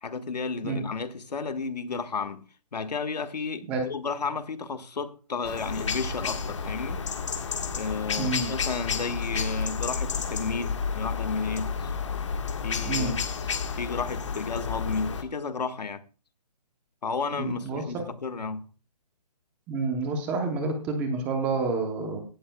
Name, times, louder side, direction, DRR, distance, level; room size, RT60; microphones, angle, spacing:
voice 1, 0.0-2.4 2.7-7.0 7.7-11.9 12.6-13.3 13.8-16.0 17.0-18.7, left 4 dB, 75° left, 1.5 m, -32 dB
sound 1, 5.4-15.2, left 5 dB, 45° left, 1.5 m, -31 dB
voice 2, 8.2-8.5 12.8-13.2 17.3-17.8 19.7-22.2, right 3 dB, 5° right, 0.8 m, -29 dB
17.0 x 11.5 x 2.3 m
hypercardioid pair, 170°, 21 cm